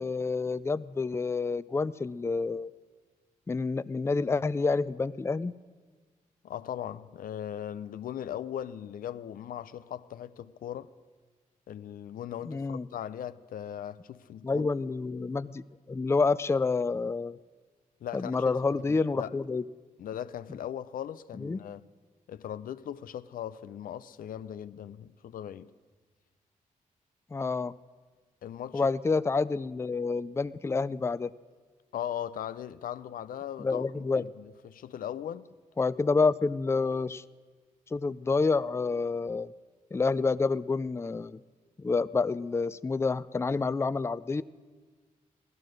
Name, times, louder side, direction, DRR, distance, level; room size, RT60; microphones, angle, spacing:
voice 1, 0.0-2.7 3.5-5.5 12.5-12.9 14.4-17.4 18.1-19.6 21.4-21.6 27.3-27.7 28.7-31.3 33.6-34.2 35.8-37.2 37.9-39.5 39.9-41.4 41.8-44.4, left 4 dB, 20° left, 0.4 m, -28 dB
voice 2, 6.4-10.9 11.7-14.7 18.0-19.3 20.0-21.9 22.3-25.7 28.4-28.9 31.9-35.5, left 10 dB, 80° left, 0.5 m, -39 dB
16.5 x 12.0 x 6.4 m
cardioid pair, 65°, 14 cm